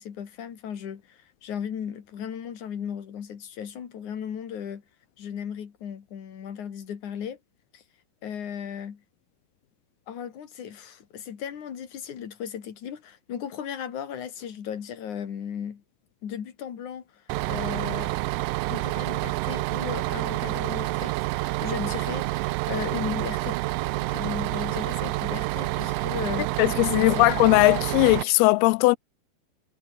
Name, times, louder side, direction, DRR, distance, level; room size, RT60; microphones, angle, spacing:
voice 1, 0.0-4.8 5.2-7.4 7.7-7.8 8.2-9.0 10.1-15.8 16.2-18.1 18.7-23.6 24.1-26.6 26.9-27.3, left 8 dB, 55° left, 3.7 m, -36 dB
Bus, 17.3-28.2, right 20 dB, 90° right, 1.9 m, -28 dB
voice 2, 26.6-29.0, left 24 dB, 85° left, 2.5 m, -19 dB
omnidirectional pair, 4.5 m